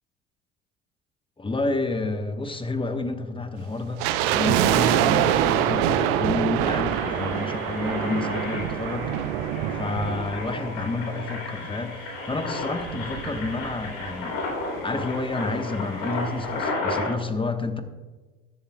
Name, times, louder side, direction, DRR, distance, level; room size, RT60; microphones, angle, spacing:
voice 1, 1.4-4.0 4.3-9.1 9.7-14.4 14.8-17.8, left 3 dB, 15° left, 8 dB, 1.1 m, -29 dB
sound 1, 4.0-11.3 11.5-11.6 12.3-14.1 14.4-14.5 14.7-15.0 15.4-15.5, right 11 dB, 65° right, 0.7 m, -25 dB
Engine, 5.9-6.0 6.4-17.1, left 3 dB, 65° left, 3.3 m, -33 dB
21.5 x 7.3 x 2.3 m, 1.3 s
figure-of-eight pair, 55°, 31 cm